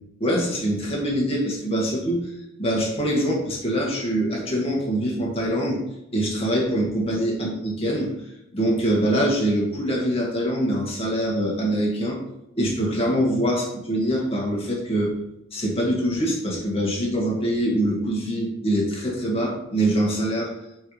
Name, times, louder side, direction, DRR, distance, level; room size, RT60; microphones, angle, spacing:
voice 1, 0.2-2.3 2.6-5.8 6.1-8.1 8.5-12.2 12.6-15.1 15.5-20.5, right 1 dB, 30° left, -3 dB, 2.0 m, -24 dB
9.1 x 4.6 x 3.3 m, 0.84 s
head